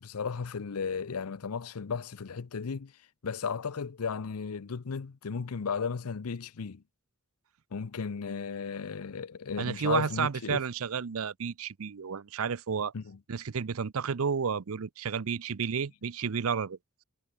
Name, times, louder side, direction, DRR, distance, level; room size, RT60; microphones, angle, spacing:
voice 1, 0.0-2.9 3.2-6.8 7.7-10.6 12.9-13.2, left 5 dB, 90° left, 0.6 m, -35 dB
voice 2, 9.6-12.9 13.3-16.8, right 6 dB, 70° right, 0.6 m, -31 dB
head